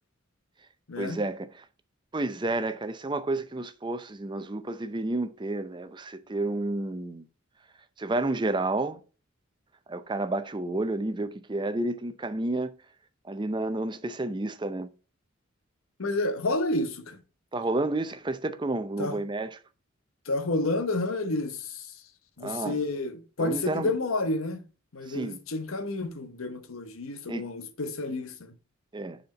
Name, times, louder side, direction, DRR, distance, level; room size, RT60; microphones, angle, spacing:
voice 1, 1.0-1.6 2.1-7.2 8.0-9.0 9.9-12.7 13.2-14.9 17.5-19.6 22.4-22.8 23.4-23.9 25.1-25.4 27.3-27.5 28.9-29.2, right 2 dB, 20° right, 0.5 m, -30 dB
voice 2, 16.0-17.2 19.0-19.2 20.3-21.9 22.4-24.6 24.9-28.5, left 2 dB, 85° left, 1.0 m, -30 dB
6.7 x 4.3 x 5.2 m
head